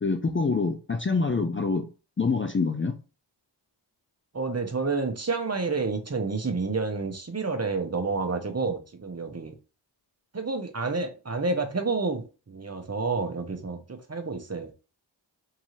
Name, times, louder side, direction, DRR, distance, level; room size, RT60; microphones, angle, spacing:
voice 1, 0.0-1.9 2.2-3.0, left 4 dB, 30° left, 0.4 m, -26 dB
voice 2, 4.3-9.5 10.3-14.7, right 4 dB, 35° right, 0.8 m, -29 dB
3.7 x 2.7 x 3.1 m
cardioid pair, 40°, 45 cm